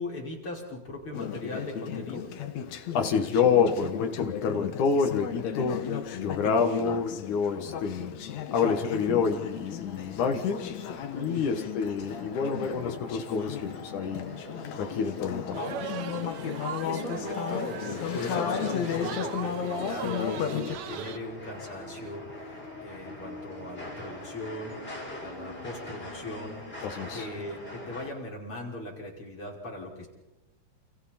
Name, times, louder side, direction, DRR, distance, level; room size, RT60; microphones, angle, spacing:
voice 1, 0.0-2.3 11.3-11.6 16.5-24.8 25.2-26.6 27.1-30.1, left 1 dB, 45° left, -2 dB, 6.2 m, -39 dB
Conversation / Chatter, 1.1-20.8, left 8 dB, 70° left, 2.4 m, -35 dB
voice 2, 2.9-8.1 8.5-10.7 11.1-14.3 14.7-15.6 26.8-27.3, left 5 dB, 90° left, 4 dB, 3.2 m, -28 dB
sound 1, 8.6-28.1, left 1 dB, 20° left, 5.6 m, -44 dB
sound 2, 15.5-21.2, right 9 dB, 70° right, 2.3 m, -39 dB
30.0 x 29.5 x 4.4 m, 1.0 s
omnidirectional pair, 3.4 m